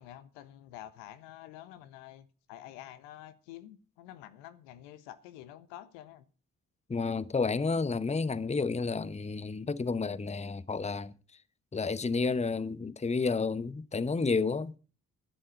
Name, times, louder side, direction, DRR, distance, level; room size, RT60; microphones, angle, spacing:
voice 1, 0.0-6.3, left 12 dB, 75° left, 1.3 m, -48 dB
voice 2, 6.9-11.1 11.7-14.8, left 4 dB, 15° left, 1.0 m, -31 dB
12.0 x 10.0 x 5.3 m
figure-of-eight pair, 40°, 43 cm